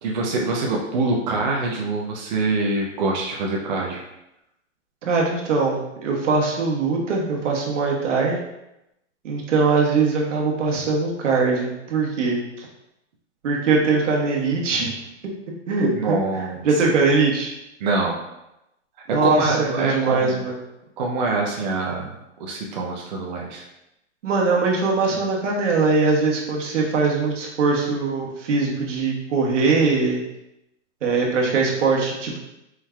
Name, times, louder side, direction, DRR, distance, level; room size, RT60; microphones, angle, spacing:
voice 1, 0.0-4.0 15.9-16.7 17.8-18.2 19.2-20.4 21.0-22.1 22.4-23.6, right 3 dB, 40° right, -2 dB, 0.5 m, -24 dB
voice 2, 5.0-8.4 9.2-12.7 13.4-14.9 15.7-16.2 16.6-17.5 19.1-20.6 24.2-30.2 31.0-32.4, right 4 dB, 80° right, -1 dB, 1.2 m, -21 dB
4.5 x 3.6 x 2.2 m, 0.88 s
hypercardioid pair, 170°, 36 cm